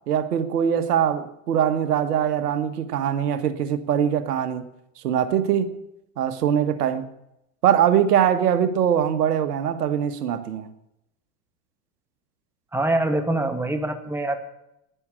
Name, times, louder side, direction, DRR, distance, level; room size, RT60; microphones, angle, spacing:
voice 1, 0.1-4.7 5.0-5.8 6.2-7.0 7.6-10.7, right 9 dB, 80° right, 10 dB, 1.4 m, -22 dB
voice 2, 12.7-14.4, right 2 dB, 5° right, 6 dB, 1.9 m, -24 dB
11.5 x 10.5 x 8.8 m, 0.83 s
hypercardioid pair, 100°, 46 cm